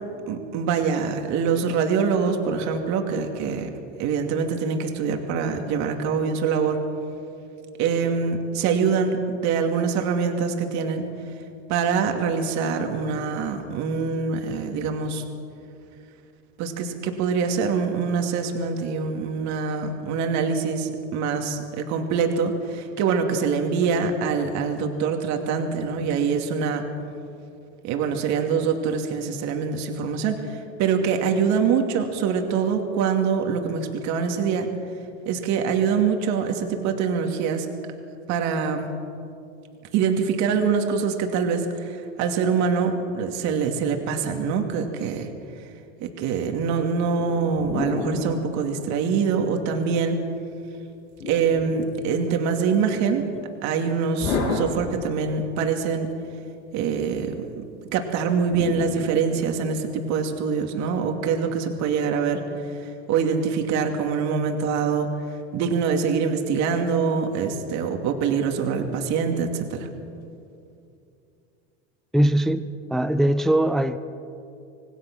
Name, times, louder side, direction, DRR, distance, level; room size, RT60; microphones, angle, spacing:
voice 1, 0.3-3.7 4.0-6.8 7.8-11.0 11.7-15.2 16.6-26.8 27.8-34.7 35.2-37.7 38.3-38.9 39.9-45.3 46.0-50.2 51.3-53.2 53.6-56.1 56.7-57.6 57.9-62.4 62.8-65.1 65.5-69.9, right 6 dB, 50° right, 4 dB, 2.6 m, -24 dB
sound 1, 47.2-49.5 51.2-52.4 54.2-55.5 58.5-60.0, left 4 dB, 85° left, 7.6 m, -32 dB
voice 2, 72.1-74.0, right 1 dB, ahead, 11 dB, 0.5 m, -21 dB
26.0 x 19.0 x 6.2 m, 2.6 s
supercardioid pair, 135°, 35 cm